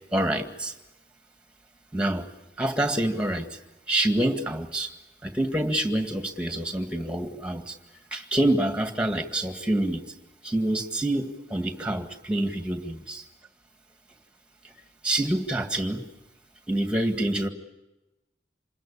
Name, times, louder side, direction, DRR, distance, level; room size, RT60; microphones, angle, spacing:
voice 1, 0.1-0.7 1.9-2.3 2.6-3.6 3.9-4.9 5.2-7.8 8.1-10.0 10.4-13.2 15.0-16.1 16.7-17.5, right 1 dB, 5° right, 5 dB, 2.0 m, -26 dB
27.5 x 21.5 x 8.6 m, 1.0 s
head